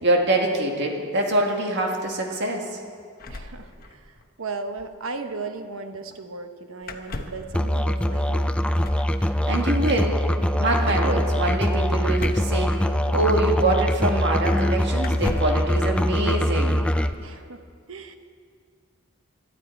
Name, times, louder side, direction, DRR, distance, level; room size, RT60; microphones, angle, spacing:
voice 1, 0.0-2.7 9.5-10.2 10.6-12.7 13.1-16.8, right 2 dB, 60° right, 1 dB, 2.0 m, -24 dB
sound 1, 3.2-4.3 4.5-4.6 4.8-5.0 6.8-7.5 8.8-9.2 12.1-13.3 14.2-14.3 15.0-15.7, left 2 dB, 45° left, 0.9 m, -36 dB
voice 2, 3.3-4.1 4.4-8.6 17.2-17.6 17.9-18.2, right 3 dB, 85° right, 7 dB, 1.0 m, -36 dB
Musical instrument, 7.5-17.1, equal, 5° left, 0.4 m, -23 dB
19.0 x 12.5 x 4.6 m, 2.1 s
head